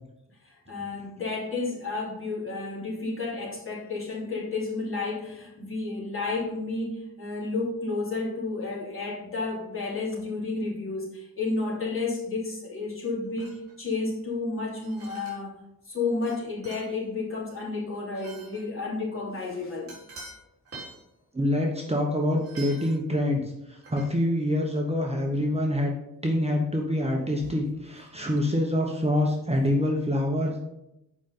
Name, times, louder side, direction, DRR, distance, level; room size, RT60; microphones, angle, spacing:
voice 1, 0.4-15.5 15.9-19.9, left 3 dB, 40° left, -5 dB, 3.1 m, -31 dB
sound 1, 13.4-13.7 14.8-15.4 16.2-16.4 16.6-17.0 18.1-18.7 19.9-20.4 20.6-21.0 22.4-23.0 23.8-24.0, right 3 dB, 40° right, 3.7 m, -45 dB
voice 2, 21.3-25.9 26.2-30.6, left 1 dB, 20° right, 0 dB, 1.0 m, -26 dB
8.2 x 5.3 x 5.4 m, 0.87 s
wide cardioid pair, 145°, 34 cm